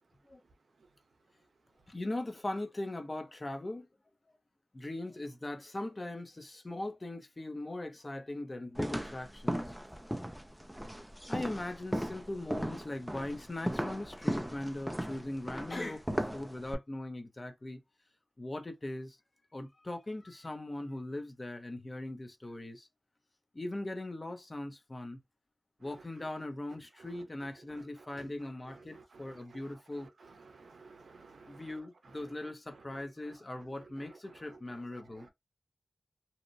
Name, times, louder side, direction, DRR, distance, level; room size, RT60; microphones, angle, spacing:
voice 1, 1.9-3.9 4.7-9.6 11.3-17.8 18.4-19.2 19.5-22.9 23.5-25.2 25.8-30.1 31.5-35.3, left 1 dB, 30° left, 0.6 m, -40 dB
sound 1, 8.8-16.7, equal, 5° right, 0.4 m, -37 dB
voice 2, 29.3-29.6 30.5-31.7, right 4 dB, 80° right, 0.5 m, -55 dB
2.8 x 2.1 x 2.5 m
wide cardioid pair, 75°, 0 cm